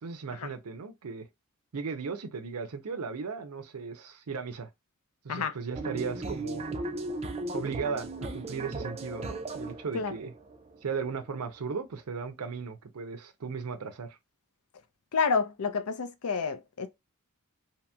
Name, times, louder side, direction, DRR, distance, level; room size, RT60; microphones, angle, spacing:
voice 1, 0.0-1.3 1.7-4.7 5.2-6.6 7.5-10.3 10.8-14.2, right 5 dB, 80° right, 0.6 m, -36 dB
sound 1, 5.7-11.5, right 2 dB, 25° right, 0.4 m, -37 dB
voice 2, 15.1-16.9, left 5 dB, 75° left, 0.5 m, -29 dB
2.9 x 2.8 x 2.2 m
head